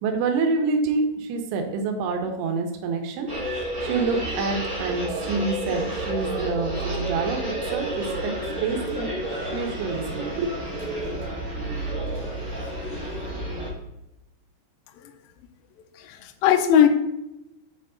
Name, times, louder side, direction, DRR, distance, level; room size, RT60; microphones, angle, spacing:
voice 1, 0.0-3.3 3.6-8.3 8.6-10.5, right 4 dB, 75° right, 4 dB, 2.8 m, -27 dB
sound 1, 3.3-13.7, right 1 dB, 55° right, 0.8 m, -30 dB
voice 2, 16.0-16.9, left 9 dB, 90° left, 6 dB, 2.0 m, -19 dB
7.8 x 4.5 x 3.8 m, 0.90 s
omnidirectional pair, 4.9 m